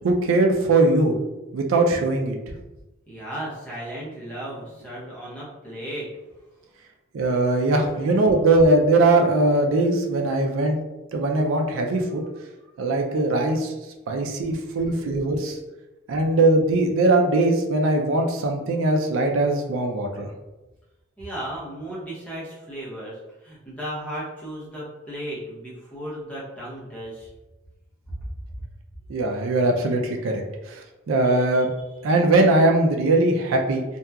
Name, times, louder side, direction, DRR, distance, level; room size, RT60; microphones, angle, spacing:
voice 1, 0.0-1.2 1.5-2.4 7.1-10.8 11.1-12.2 12.8-13.7 14.1-15.6 16.1-20.3 29.1-30.8 31.1-31.7 32.0-33.8, right 2 dB, 80° right, 2 dB, 0.4 m, -20 dB
voice 2, 3.1-6.2 6.6-6.8 7.9-8.1 14.3-15.1 21.2-27.3 28.1-28.2 28.6-28.7 31.2-32.1, right 1 dB, 5° left, -8 dB, 0.7 m, -36 dB
2.7 x 2.3 x 2.3 m, 1.1 s
head